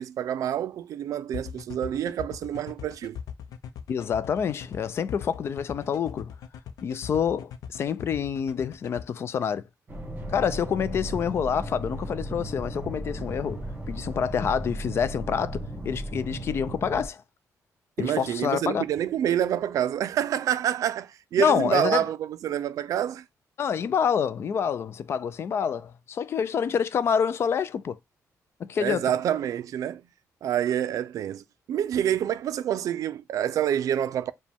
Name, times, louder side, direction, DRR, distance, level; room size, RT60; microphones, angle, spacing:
voice 1, 0.0-3.2 18.0-23.2 28.8-30.0 30.4-34.3, right 10 dB, 65° right, 0.3 m, -27 dB
sound 1, 1.3-9.0, left 8 dB, 85° left, 0.6 m, -40 dB
voice 2, 3.9-6.3 6.8-9.6 10.3-17.2 18.0-18.8 21.4-22.0 23.6-28.0 28.6-29.1, left 7 dB, 45° left, 0.3 m, -27 dB
sound 2, 9.9-17.1, right 1 dB, 25° right, 1.4 m, -35 dB
4.9 x 2.2 x 3.4 m
wide cardioid pair, 175°, 6 cm